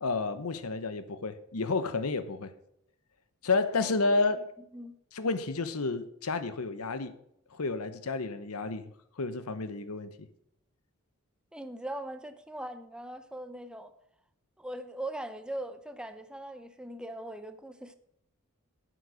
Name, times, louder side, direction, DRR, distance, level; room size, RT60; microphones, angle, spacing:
voice 1, 0.0-2.5 3.4-4.4 5.1-7.1 7.5-8.8 9.2-10.1, left 3 dB, 85° left, 0.9 m, -30 dB
voice 2, 3.8-4.4 4.7-5.0 11.5-13.9 14.6-18.0, right 1 dB, 5° right, 0.6 m, -40 dB
7.9 x 7.9 x 6.2 m
head